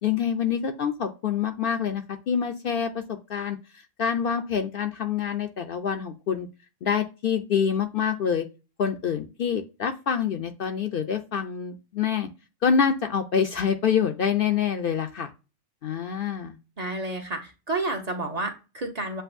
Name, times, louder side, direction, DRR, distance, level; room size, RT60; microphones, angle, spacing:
voice 1, 0.0-3.6 4.0-6.5 6.8-8.4 8.8-12.3 12.6-15.3 15.8-16.6, left 7 dB, 60° left, 6 dB, 0.7 m, -26 dB
voice 2, 16.8-19.2, right 2 dB, 40° right, 4 dB, 0.8 m, -30 dB
7.7 x 2.6 x 2.5 m, 0.30 s
omnidirectional pair, 1.2 m